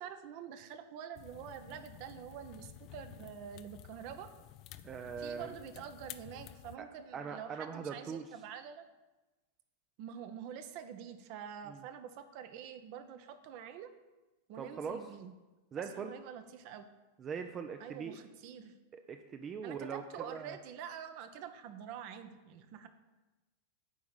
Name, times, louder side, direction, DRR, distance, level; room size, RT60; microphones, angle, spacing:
voice 1, 0.0-4.3 5.2-8.8 10.0-13.9 14.5-15.3 15.8-17.0 17.8-18.7 19.6-22.9, right 8 dB, 45° right, 8 dB, 1.0 m, -46 dB
sound 1, 1.1-6.8, left 13 dB, 40° left, 0.5 m, -52 dB
voice 2, 4.8-5.5 6.8-6.9 7.1-8.2 11.7-11.8 14.6-15.0 15.7-16.1 17.2-18.2 18.9-20.0 20.3-20.5, right 6 dB, 25° right, 6 dB, 0.6 m, -41 dB
9.4 x 5.9 x 8.3 m, 1.1 s
figure-of-eight pair, 90°, 0 cm